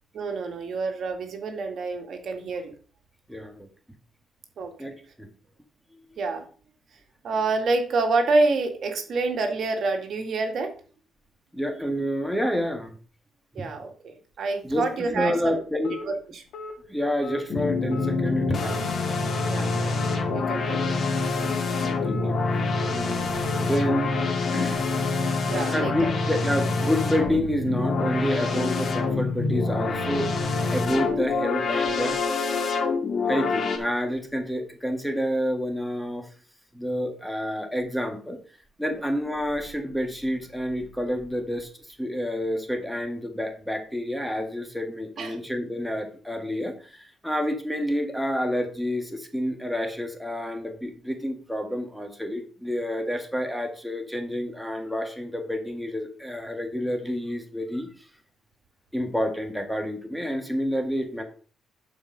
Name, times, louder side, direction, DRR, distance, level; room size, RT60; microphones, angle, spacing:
voice 1, 0.1-2.7 4.6-4.7 6.2-6.4 7.2-10.7 13.5-15.6 16.0-16.4 19.5-19.9 20.3-21.0 25.5-26.1 38.9-39.0 45.2-45.4, right 3 dB, 60° right, 4 dB, 2.1 m, -27 dB
voice 2, 3.3-3.7 4.8-4.9 5.2-5.3 11.5-12.9 13.6-13.7 14.6-14.8 15.1-15.9 16.9-19.0 21.8-23.3 23.6-24.1 24.5-24.8 25.7-32.2 33.3-36.3 36.7-38.4 38.8-57.9 58.9-61.2, equal, ahead, 5 dB, 1.8 m, -29 dB
sound 1, 15.2-15.4 15.8-16.1 16.5-16.7 17.2-17.4 17.9-18.1 18.6-18.8 19.3-19.5 20.0-20.2 20.7-20.9 21.4-21.6 22.0-22.3 22.7-22.9 23.4-23.6 24.1-24.3 24.8-25.0 25.5-25.7, left 2 dB, 75° left, 1.7 m, -37 dB
sound 2, 17.5-33.8, left 3 dB, 45° left, 2.5 m, -26 dB
11.0 x 5.0 x 5.4 m, 0.41 s
cardioid pair, 90°, 0 cm